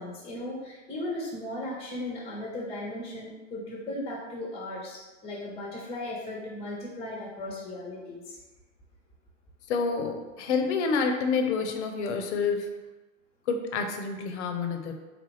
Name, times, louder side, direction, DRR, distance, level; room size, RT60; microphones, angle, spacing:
voice 1, 0.0-8.4, left 1 dB, 15° left, -3 dB, 0.7 m, -37 dB
voice 2, 9.7-12.7 13.5-14.9, left 5 dB, 65° left, 5 dB, 0.6 m, -28 dB
3.5 x 2.4 x 3.1 m, 1.2 s
hypercardioid pair, 95°, 38 cm